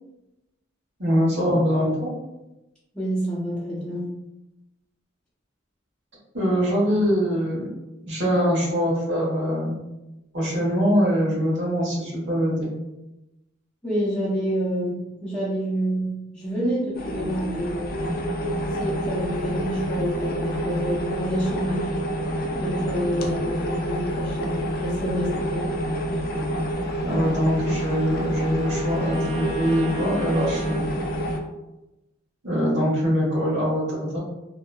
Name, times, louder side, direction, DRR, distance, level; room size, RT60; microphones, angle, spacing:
voice 1, 1.0-2.2 6.3-7.7 8.0-9.8 10.3-12.7 27.0-30.9 32.4-34.2, equal, 60° right, -6 dB, 1.2 m, -23 dB
voice 2, 2.9-4.1 13.8-17.9 18.8-21.9 22.6-25.7, equal, 5° left, -11 dB, 0.7 m, -28 dB
sound 1, 16.9-31.4, equal, 50° left, 0.4 m, -28 dB
Trumpet, 26.4-30.9, right 1 dB, 40° right, 0.5 m, -42 dB
2.9 x 2.3 x 2.2 m, 0.96 s
head